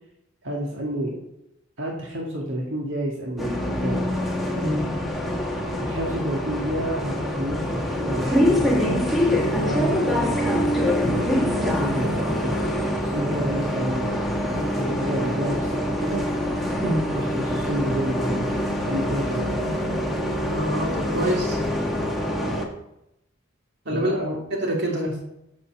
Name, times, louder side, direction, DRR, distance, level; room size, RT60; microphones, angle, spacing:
voice 1, 0.4-1.1 1.8-4.1 5.8-9.0 9.6-10.6 11.0-12.5 13.0-14.3 14.5-16.3 17.1-18.5 18.8-19.6 23.9-24.4 24.9-25.2, equal, 85° right, -2 dB, 1.8 m, -29 dB
Bus, 3.4-22.7, equal, ahead, 1.4 m, -25 dB
voice 2, 4.5-4.9 16.8-17.1 20.5-21.6 23.8-24.1 24.5-25.0, right 1 dB, 60° right, -1 dB, 2.8 m, -26 dB
10.5 x 5.6 x 7.1 m, 0.84 s
head